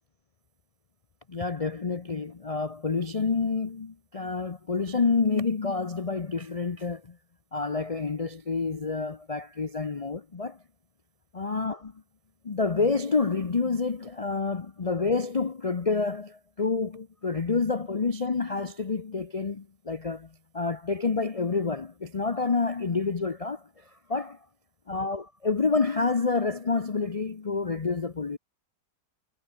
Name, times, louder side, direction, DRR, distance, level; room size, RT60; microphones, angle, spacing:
voice 1, 1.3-7.2 7.5-10.6 11.3-11.9 12.4-20.3 20.5-23.6 24.1-24.4 24.9-28.4, left 4 dB, 65° left, 0.3 m, -28 dB
omnidirectional pair, 1.9 m